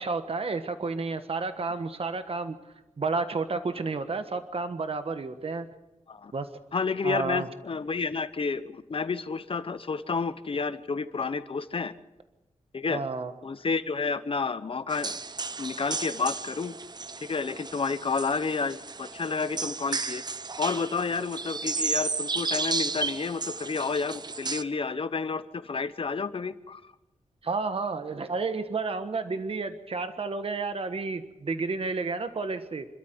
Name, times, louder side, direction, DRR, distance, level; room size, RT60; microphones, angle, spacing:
voice 1, 0.0-2.6 3.0-5.7 6.3-6.5 7.0-7.5 12.9-13.3 27.4-32.9, right 4 dB, 50° right, 9 dB, 1.4 m, -31 dB
voice 2, 6.7-11.9 12.7-13.0 13.4-15.2 15.6-16.8 17.2-20.2 20.6-26.8, left 4 dB, 50° left, 13 dB, 1.0 m, -30 dB
sound 1, 14.9-24.6, right 4 dB, 35° right, 0.7 m, -33 dB
27.0 x 13.0 x 8.0 m, 1.0 s
wide cardioid pair, 130°, 12 cm